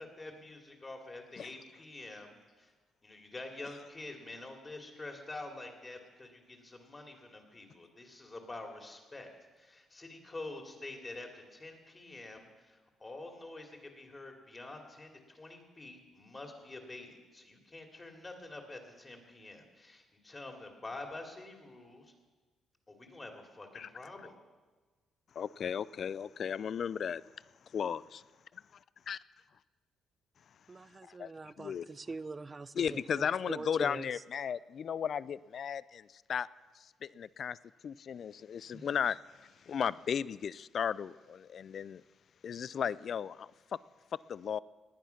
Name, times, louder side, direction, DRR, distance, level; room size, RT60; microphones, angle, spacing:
voice 1, 0.0-2.7 3.0-22.1 22.9-24.3, left 2 dB, 25° left, 3 dB, 2.7 m, -47 dB
voice 2, 25.4-27.2 27.7-28.0 29.1-29.2 31.1-31.3 31.6-31.9 32.8-36.5 36.8-37.6 37.8-39.2 39.6-42.0 42.4-43.8 44.3-44.6, left 7 dB, 55° left, 20 dB, 0.3 m, -35 dB
voice 3, 30.7-34.2 38.7-38.9, right 3 dB, 30° right, 17 dB, 0.5 m, -44 dB
19.0 x 9.5 x 5.9 m, 1.3 s
cardioid pair, 90°, 0 cm